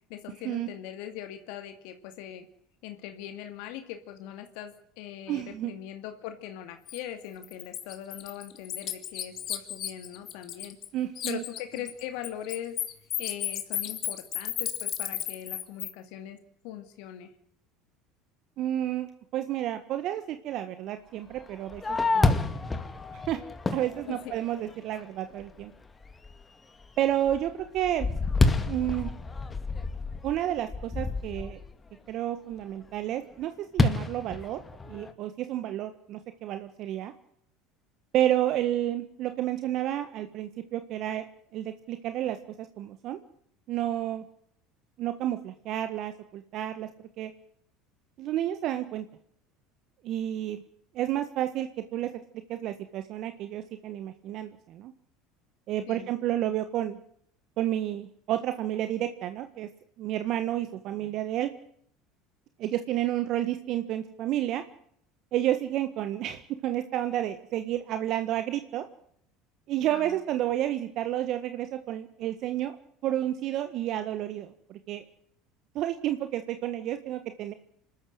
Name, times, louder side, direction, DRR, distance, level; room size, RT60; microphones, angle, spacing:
voice 1, 0.1-2.5 2.8-10.8 11.3-12.8 13.2-16.4 16.6-17.3 24.1-24.3 55.9-56.1 69.9-70.2, left 11 dB, 65° left, 8 dB, 2.3 m, -41 dB
voice 2, 5.3-5.7 10.9-11.4 18.6-19.1 19.3-22.4 23.1-23.4 23.7-25.7 27.0-28.1 28.6-29.1 30.2-31.6 32.1-34.6 34.9-37.1 38.1-41.2 41.5-43.2 43.7-44.2 45.0-46.9 47.2-47.3 48.2-49.0 50.0-50.6 50.9-52.1 52.5-54.9 55.7-57.0 57.6-59.7 60.0-61.5 62.6-64.6 65.3-68.8 69.7-72.7 73.0-75.0 75.7-77.5, right 12 dB, 55° right, 9 dB, 1.5 m, -30 dB
Bird, 6.9-7.0 7.4-10.9 11.2-15.9, left 11 dB, 50° left, 2.7 m, -33 dB
Fireworks, 21.4-24.9 25.4-25.5 26.0-26.4 26.8-31.7 33.8-35.1, left 3 dB, 20° left, 2.3 m, -29 dB
27.0 x 13.0 x 8.0 m, 0.67 s
hypercardioid pair, 75°, 0 cm